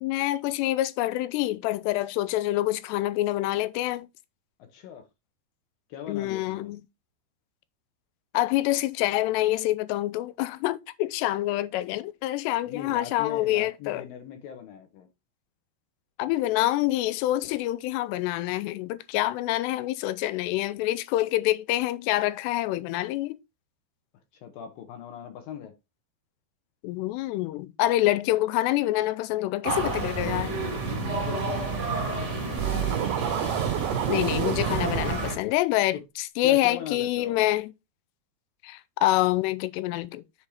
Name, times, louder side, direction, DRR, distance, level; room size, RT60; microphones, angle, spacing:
voice 1, 0.0-4.1 6.1-6.8 8.3-14.0 16.2-23.4 26.8-30.6 32.7-32.9 34.1-37.7 38.6-40.2, left 15 dB, 80° left, 2.6 m, -26 dB
voice 2, 4.6-5.0 5.9-6.7 12.6-15.1 24.4-25.7 30.8-33.0 35.9-36.0 36.4-37.4, left 9 dB, 65° left, 2.6 m, -40 dB
sound 1, 29.6-35.4, right 3 dB, 30° right, 1.3 m, -30 dB
Scratching (performance technique), 32.6-35.1, right 13 dB, 85° right, 2.9 m, -29 dB
7.2 x 4.3 x 4.8 m
omnidirectional pair, 5.0 m